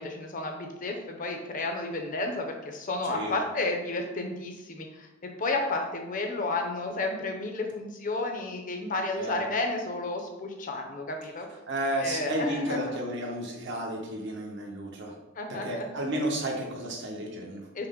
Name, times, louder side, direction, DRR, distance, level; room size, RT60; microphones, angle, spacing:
voice 1, 0.0-5.1 5.4-11.6 12.0-12.8 15.4-15.9 17.7-17.9, left 2 dB, 40° left, 3 dB, 0.6 m, -32 dB
voice 2, 3.0-3.4 9.2-9.4 11.7-15.1 15.5-17.9, right 1 dB, 60° right, 0 dB, 0.9 m, -32 dB
5.8 x 2.1 x 3.6 m, 0.97 s
head